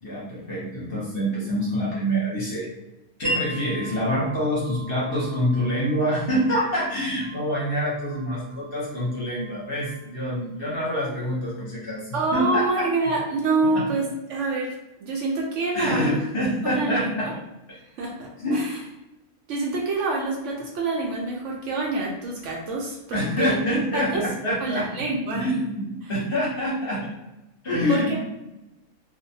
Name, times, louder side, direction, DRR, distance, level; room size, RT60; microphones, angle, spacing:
voice 1, 0.0-2.7 3.2-12.9 13.7-13.8 15.7-17.4 18.4-18.6 23.1-24.9 25.3-27.1 27.6-28.2, equal, 50° left, -6 dB, 0.9 m, -26 dB
Wind chime, 3.2-10.9, right 1 dB, 20° right, 0.7 m, -38 dB
voice 2, 12.1-14.0 14.3-14.7 15.0-16.2 16.6-17.1 18.0-18.7 19.5-24.2 24.6-25.5 27.9-28.2, right 3 dB, 70° right, -1 dB, 0.8 m, -26 dB
2.5 x 2.1 x 2.7 m, 0.95 s
omnidirectional pair, 1.5 m